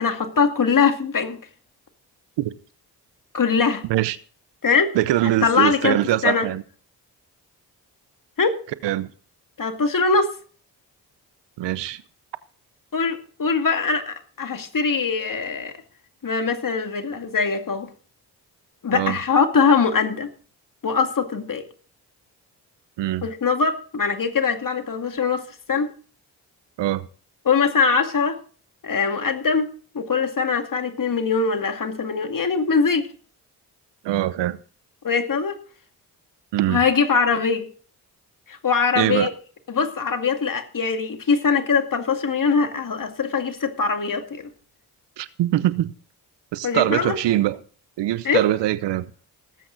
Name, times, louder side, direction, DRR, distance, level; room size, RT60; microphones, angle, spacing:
voice 1, 0.0-1.4 3.3-3.8 4.6-5.0 5.2-6.5 8.4-8.6 9.6-10.3 12.9-15.7 16.2-17.9 18.8-20.3 20.8-21.6 23.2-25.9 27.5-28.4 28.8-29.7 29.9-33.1 35.0-35.6 36.7-37.7 38.5-39.3 39.7-44.5 46.6-47.2 48.2-48.4, left 5 dB, 50° left, 2.3 m, -22 dB
voice 2, 4.9-6.6 8.8-9.1 11.6-12.0 18.9-19.2 23.0-23.3 26.8-27.1 34.0-34.6 36.5-36.8 39.0-39.3 45.2-45.9 46.5-47.6 48.0-49.1, right 14 dB, 90° right, 0.8 m, -22 dB
18.0 x 8.5 x 4.0 m
supercardioid pair, 50°, 41 cm